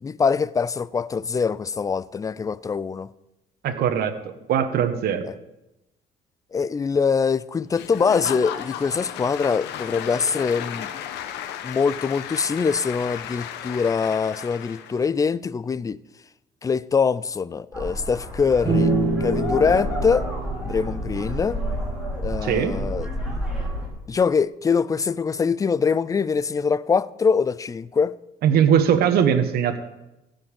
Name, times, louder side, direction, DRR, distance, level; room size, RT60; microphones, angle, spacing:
voice 1, 0.0-3.1 5.2-5.3 6.5-10.9 11.6-16.0 16.6-18.9 19.2-20.3 20.6-21.6 22.2-23.1 24.1-28.1, left 5 dB, 20° left, 0.4 m, -23 dB
voice 2, 3.6-4.1 4.5-5.3 22.4-22.8 28.4-29.8, right 8 dB, 65° right, 1.3 m, -20 dB
Applause / Crowd, 7.7-15.1, left 10 dB, 85° left, 1.1 m, -34 dB
sound 1, 17.7-23.9, equal, ahead, 4.4 m, -30 dB
sound 2, 18.6-22.2, right 2 dB, 30° right, 5.7 m, -26 dB
15.0 x 5.5 x 8.8 m
cardioid pair, 110°, 17 cm